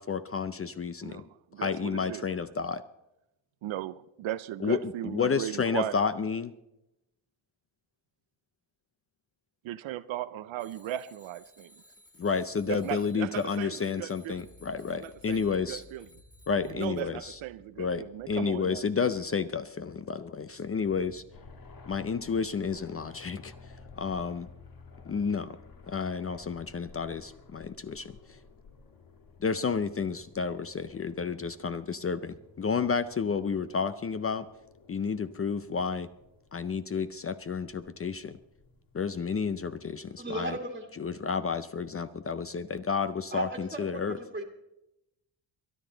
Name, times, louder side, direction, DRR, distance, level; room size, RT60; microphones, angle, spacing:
voice 1, 0.0-1.3 1.6-2.8 4.6-6.5 12.2-15.8 16.5-17.4 17.8-21.2 21.9-24.5 25.1-25.6 25.9-28.4 29.4-34.5 34.9-36.1 36.5-38.4 38.9-40.6 41.0-44.2, left 5 dB, 30° left, 0.5 m, -31 dB
voice 2, 1.0-2.3 3.6-6.0 9.6-11.8 12.7-14.5 15.0-16.1 16.6-18.8, right 13 dB, 90° right, 0.6 m, -37 dB
Bicycle bell, 10.6-17.0, left 1 dB, 10° left, 2.1 m, -59 dB
sound 1, 12.5-24.9, left 3 dB, 80° left, 5.1 m, -60 dB
sound 2, 21.3-39.9, left 4 dB, 50° left, 1.8 m, -54 dB
voice 3, 40.2-40.9 43.3-44.4, right 2 dB, 20° right, 1.7 m, -36 dB
23.5 x 10.5 x 3.9 m
cardioid pair, 115°, 46 cm